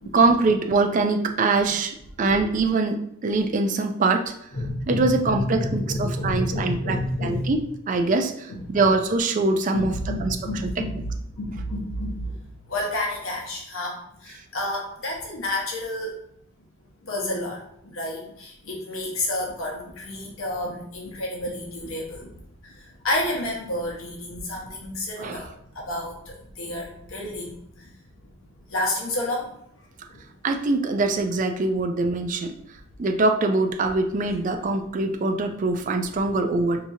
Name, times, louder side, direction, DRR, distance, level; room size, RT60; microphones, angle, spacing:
voice 1, 0.1-4.3 4.9-7.6 7.9-9.9 10.2-10.4 10.6-10.7 25.2-25.5 30.4-32.5 33.0-36.9, right 3 dB, 35° right, 5 dB, 0.3 m, -23 dB
voice 2, 4.5-7.5 8.5-8.9 9.7-12.4 12.7-16.1 17.0-22.3 22.6-27.9 28.7-30.2 36.3-36.4, left 1 dB, 70° left, -1 dB, 0.8 m, -30 dB
4.8 x 2.8 x 2.7 m, 0.73 s
head